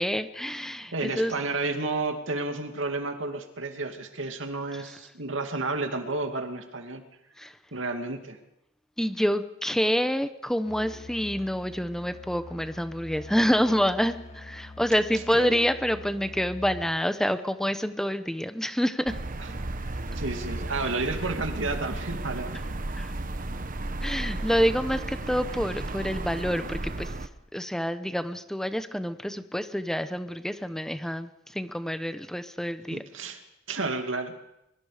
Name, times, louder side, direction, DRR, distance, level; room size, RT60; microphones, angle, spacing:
voice 1, 0.0-1.3 4.7-4.8 7.4-7.6 9.0-19.1 23.0-23.1 24.0-27.1 27.5-33.0, equal, 5° left, 10 dB, 0.9 m, -27 dB
voice 2, 0.9-7.0 7.7-8.4 15.3-15.7 20.1-22.6 32.9-33.4 33.7-34.3, right 3 dB, 85° right, 5 dB, 2.5 m, -31 dB
Musical instrument, 10.7-17.0, left 2 dB, 35° left, 1.6 m, -45 dB
sound 1, 19.1-27.3, right 2 dB, 45° right, 1.1 m, -34 dB
23.5 x 23.5 x 5.1 m, 0.85 s
head